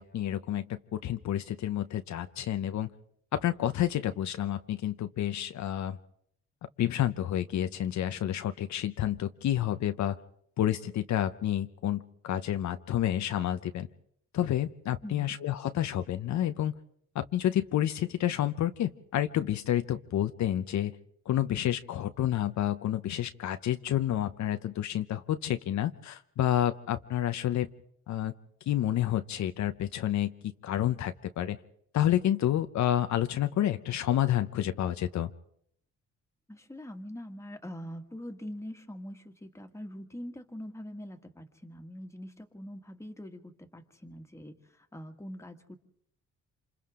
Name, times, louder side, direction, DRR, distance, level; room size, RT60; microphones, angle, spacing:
voice 1, 0.0-2.9 3.3-6.0 6.8-10.2 10.6-13.9 14.3-16.7 17.1-20.9 21.3-27.7 28.1-28.3 28.7-31.6 31.9-35.3, left 12 dB, 65° left, 9 dB, 0.8 m, -29 dB
voice 2, 15.0-15.3 36.5-45.7, equal, 10° left, 5 dB, 1.9 m, -43 dB
27.0 x 27.0 x 3.7 m, 0.69 s
cardioid pair, 90°, 30 cm